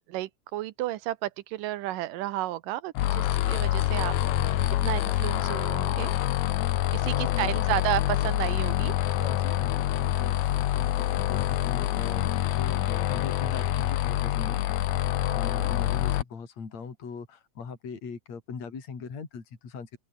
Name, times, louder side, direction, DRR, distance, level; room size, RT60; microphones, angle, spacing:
voice 1, 0.0-4.2 4.8-6.1 6.9-8.9 15.3-15.7, right 15 dB, 85° right, 2.6 m, -32 dB
sound 1, 3.0-16.2, left 13 dB, 70° left, 2.3 m, -26 dB
voice 2, 4.3-4.7 7.1-7.8 9.1-14.6 15.3-19.9, left 5 dB, 55° left, 5.1 m, -40 dB
open air
omnidirectional pair, 3.7 m